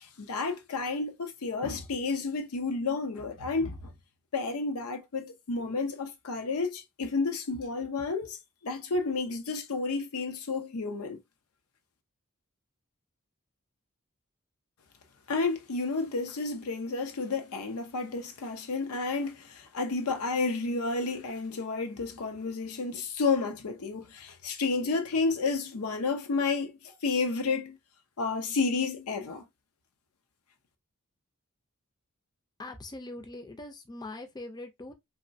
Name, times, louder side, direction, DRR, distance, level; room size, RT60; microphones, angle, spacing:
voice 1, 0.0-3.9 4.3-11.2 15.3-27.8 28.2-29.4, left 4 dB, 90° left, 0.6 m, -31 dB
voice 2, 32.6-34.9, left 2 dB, 20° left, 0.4 m, -42 dB
3.0 x 2.0 x 2.6 m
head